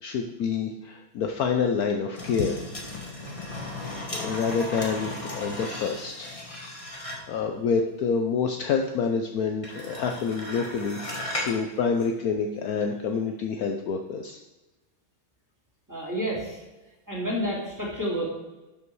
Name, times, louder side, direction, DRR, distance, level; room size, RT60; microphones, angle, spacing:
voice 1, 0.0-2.6 4.1-6.3 7.3-11.0 11.4-14.4, left 5 dB, 75° left, 4 dB, 0.8 m, -27 dB
sound 1, 2.1-7.4 9.6-11.6 12.0-12.1, left 1 dB, 15° left, 1.6 m, -36 dB
voice 2, 15.9-16.6 17.1-18.2, equal, 10° right, -4 dB, 2.6 m, -29 dB
11.5 x 5.4 x 4.7 m, 1.1 s
omnidirectional pair, 2.3 m